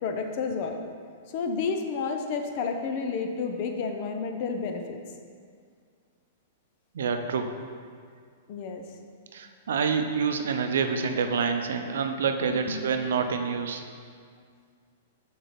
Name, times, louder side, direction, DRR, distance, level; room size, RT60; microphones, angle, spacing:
voice 1, 0.0-0.8 1.3-5.0 8.5-8.9 12.4-12.8, left 5 dB, 40° left, 5 dB, 0.7 m, -30 dB
voice 2, 6.9-7.5 9.3-13.8, right 5 dB, 80° right, 6 dB, 0.7 m, -27 dB
6.7 x 4.7 x 5.8 m, 2.1 s
hypercardioid pair, 165°, 0 cm